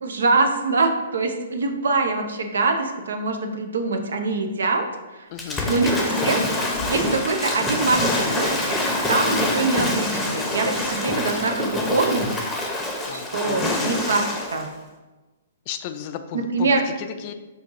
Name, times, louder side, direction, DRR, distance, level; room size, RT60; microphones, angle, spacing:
voice 1, 0.0-4.9 5.1-5.2 5.7-6.4 6.9-8.8 9.1-12.3 13.1-14.2 14.5-14.7 16.5-16.8, right 3 dB, 70° right, 5 dB, 0.6 m, -24 dB
voice 2, 5.3-5.8 13.1-14.2 15.7-17.3, left 8 dB, 40° left, 8 dB, 0.3 m, -34 dB
Waves surf / Splash splatter, 5.4-14.7, left 1 dB, 10° left, 0.7 m, -25 dB
4.5 x 2.7 x 3.7 m, 1.2 s
figure-of-eight pair, 120°, 0 cm